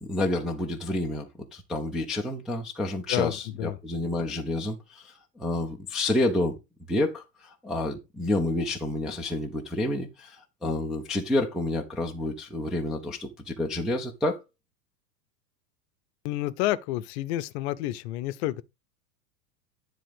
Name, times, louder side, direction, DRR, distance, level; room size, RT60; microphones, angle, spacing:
voice 1, 0.0-6.6 6.9-14.4, left 1 dB, ahead, 0.4 m, -29 dB
voice 2, 3.1-3.8 16.2-18.6, left 15 dB, 40° left, 0.7 m, -29 dB
10.0 x 3.7 x 5.1 m
figure-of-eight pair, 95°, 50 cm